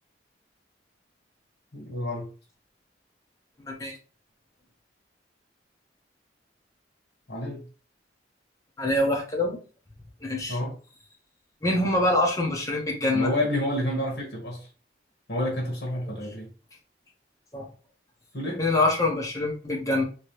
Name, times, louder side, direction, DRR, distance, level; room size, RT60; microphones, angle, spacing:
voice 1, 1.7-2.3 7.3-7.6 10.5-10.8 13.1-14.7 15.3-16.5 18.3-18.7, left 1 dB, 65° left, 1.3 m, -29 dB
voice 2, 3.7-4.0 8.8-9.6 10.2-10.6 11.6-13.3 17.5-17.7 18.6-20.0, left 2 dB, 20° left, 0.7 m, -25 dB
3.1 x 2.8 x 3.0 m
head